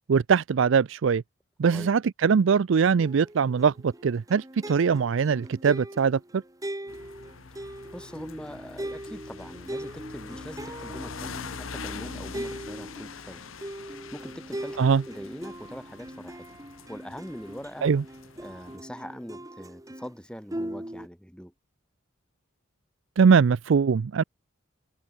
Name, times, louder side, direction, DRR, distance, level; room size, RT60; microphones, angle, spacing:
voice 1, 0.1-1.2 1.6-6.2 14.8-15.0 17.8-18.0 23.2-24.2, right 6 dB, 65° right, 0.4 m, -22 dB
sound 1, 3.0-20.1 20.5-21.1, right 1 dB, 15° right, 1.8 m, -40 dB
sound 2, 6.9-18.8, left 5 dB, 80° left, 1.0 m, -44 dB
voice 2, 7.9-13.4 13.8-16.4 16.9-17.9 18.4-21.5, equal, 5° left, 6.2 m, -42 dB
head